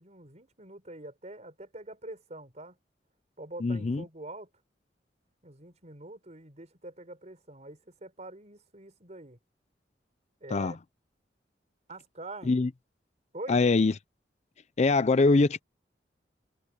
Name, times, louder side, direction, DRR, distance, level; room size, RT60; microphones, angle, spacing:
voice 1, 0.0-2.8 3.4-4.5 5.4-9.4 10.4-10.8 11.9-12.6 13.3-13.6, right 2 dB, 40° right, 4.7 m, -45 dB
voice 2, 3.6-4.0 10.5-10.8 12.5-12.7 13.5-13.9 14.8-15.6, left 3 dB, 40° left, 0.5 m, -23 dB
head